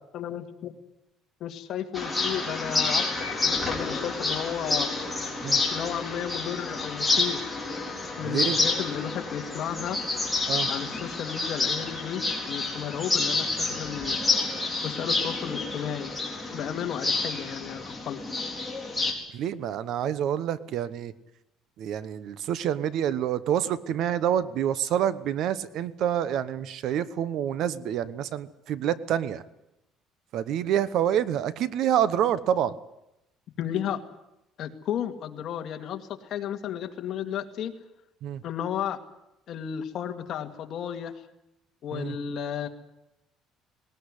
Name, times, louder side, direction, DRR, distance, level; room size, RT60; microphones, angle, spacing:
voice 1, 0.1-0.7 1.4-3.0 3.4-4.9 5.7-7.4 8.2-10.0 10.7-14.2 14.8-16.1 16.5-18.2 33.6-34.0 34.6-37.7 38.4-39.0 39.5-41.1 41.8-42.7, left 9 dB, 50° left, 5 dB, 2.2 m, -33 dB
sound 1, 1.9-19.1, left 3 dB, ahead, 4.1 m, -29 dB
voice 2, 8.2-8.6 10.5-10.7 19.3-21.1 21.8-29.4 30.3-32.8 38.2-38.4 41.9-42.2, right 10 dB, 55° right, 16 dB, 1.1 m, -27 dB
19.5 x 19.5 x 9.9 m, 0.87 s
cardioid pair, 160°, 0 cm